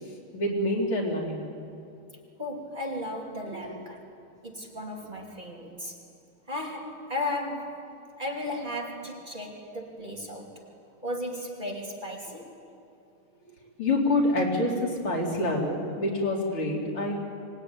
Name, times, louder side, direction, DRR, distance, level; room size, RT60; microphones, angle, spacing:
voice 1, 0.3-1.5 3.5-3.8 13.8-17.1, left 1 dB, 75° left, -1 dB, 4.7 m, -27 dB
voice 2, 2.4-4.0 4.4-6.0 6.5-7.8 8.2-10.6 11.0-12.5, left 1 dB, 20° right, -1 dB, 3.0 m, -35 dB
25.0 x 20.0 x 9.7 m, 2.6 s
omnidirectional pair, 2.4 m